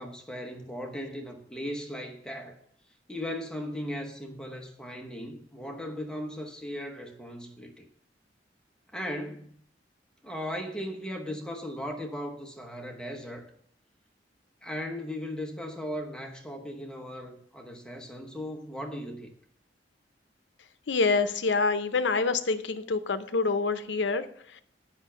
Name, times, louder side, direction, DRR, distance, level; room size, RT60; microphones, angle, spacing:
voice 1, 0.0-2.6 3.1-7.9 8.9-9.5 10.2-13.5 14.6-19.3, equal, 5° left, 0.9 m, -37 dB
voice 2, 20.9-24.3, left 4 dB, 85° left, 0.6 m, -26 dB
8.2 x 5.8 x 5.5 m
head